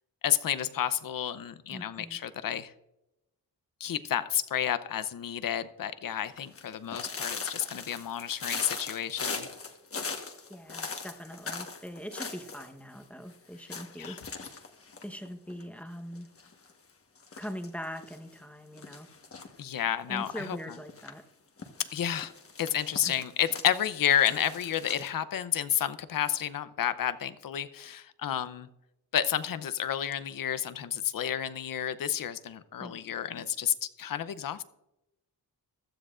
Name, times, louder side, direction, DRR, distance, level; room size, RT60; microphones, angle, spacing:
voice 1, 0.2-2.7 3.8-9.5 14.0-14.2 19.6-20.6 21.9-22.3 22.6-28.7 29.1-34.6, left 10 dB, 55° left, 14 dB, 0.7 m, -30 dB
voice 2, 1.7-2.2 10.5-14.2 15.0-16.3 17.4-19.1 20.1-21.2 23.0-23.2 32.8-33.0, equal, 5° left, 6 dB, 1.0 m, -41 dB
sound 1, 6.2-12.7 12.9-13.0 13.3-13.4 13.7-15.8 16.1-16.7 17.2-18.2 18.8-19.6 20.2-21.1 21.6-25.1, left 4 dB, 35° left, 1.3 m, -40 dB
15.5 x 12.5 x 2.5 m, 0.89 s
cardioid pair, 90°, 39 cm